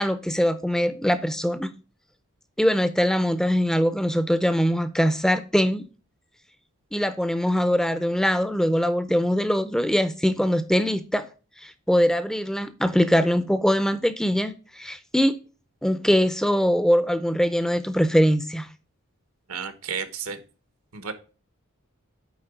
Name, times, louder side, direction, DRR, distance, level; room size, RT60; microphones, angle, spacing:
voice 1, 0.0-1.7 2.6-5.8 6.9-11.3 11.6-15.3 15.8-18.7, equal, 5° left, 0.5 m, -22 dB
voice 2, 19.5-20.4 20.9-21.1, right 6 dB, 85° right, 1.3 m, -32 dB
8.9 x 3.9 x 5.0 m
head